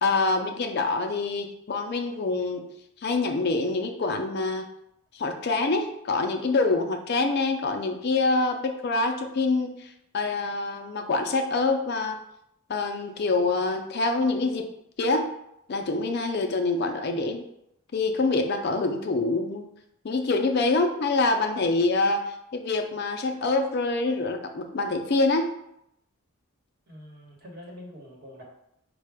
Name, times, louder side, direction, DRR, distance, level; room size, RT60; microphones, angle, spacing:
voice 1, 0.0-2.6 3.0-4.7 5.1-12.2 12.7-14.7 15.0-15.3 15.7-17.4 17.9-19.6 20.0-25.5, left 3 dB, 45° left, 5 dB, 0.4 m, -25 dB
voice 2, 26.9-28.4, left 1 dB, 45° right, -2 dB, 1.1 m, -45 dB
4.5 x 2.2 x 4.7 m, 0.78 s
head